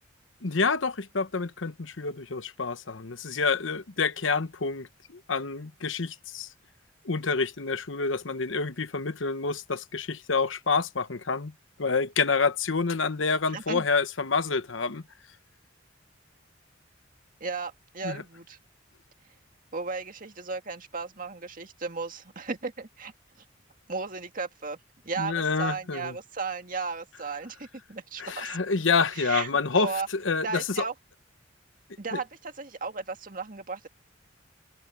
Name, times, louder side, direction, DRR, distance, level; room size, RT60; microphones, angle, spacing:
voice 1, 0.4-6.5 7.0-11.5 11.8-15.0 18.0-18.2 25.2-26.1 28.2-30.9 32.1-32.2, left 4 dB, 80° left, 1.1 m, -28 dB
voice 2, 13.5-13.9 17.4-18.6 19.7-23.1 23.9-24.8 25.0-28.6 29.1-29.5 29.8-30.1 30.4-30.9 32.0-33.9, right 4 dB, 45° right, 2.0 m, -35 dB
head